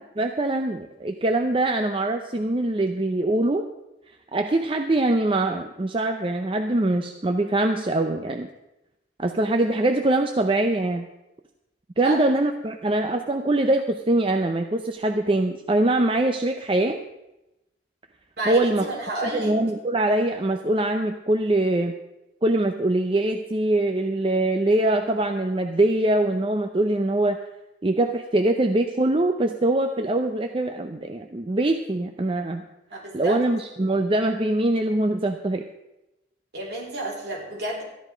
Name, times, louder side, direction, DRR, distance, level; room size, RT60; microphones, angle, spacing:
voice 1, 0.2-3.7 4.3-8.5 9.2-11.1 12.0-17.0 18.5-18.9 19.2-21.9 22.4-27.4 27.8-32.6 33.1-35.6, right 2 dB, 30° right, 5 dB, 0.6 m, -23 dB
voice 2, 18.4-19.5 32.9-33.4 36.5-37.8, right 1 dB, 60° right, -3 dB, 4.0 m, -30 dB
13.5 x 10.5 x 5.1 m, 0.94 s
head